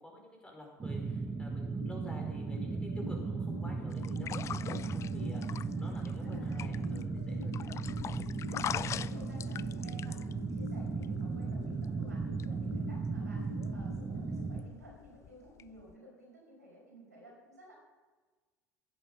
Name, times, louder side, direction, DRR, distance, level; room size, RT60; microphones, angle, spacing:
voice 1, 0.0-5.4 5.7-7.6, left 1 dB, 10° left, 0 dB, 5.1 m, -50 dB
sound 1, 0.8-14.6, right 4 dB, 20° right, 1.2 m, -36 dB
sound 2, 1.0-15.9, left 6 dB, 75° left, 1.3 m, -50 dB
sound 3, 3.9-15.9, left 10 dB, 35° left, 0.4 m, -44 dB
voice 2, 5.1-6.9 7.6-8.3 8.6-13.4 13.7-17.7, right 1 dB, 85° right, -3 dB, 5.3 m, -56 dB
15.5 x 11.0 x 5.5 m, 1.3 s
figure-of-eight pair, 65°, 9 cm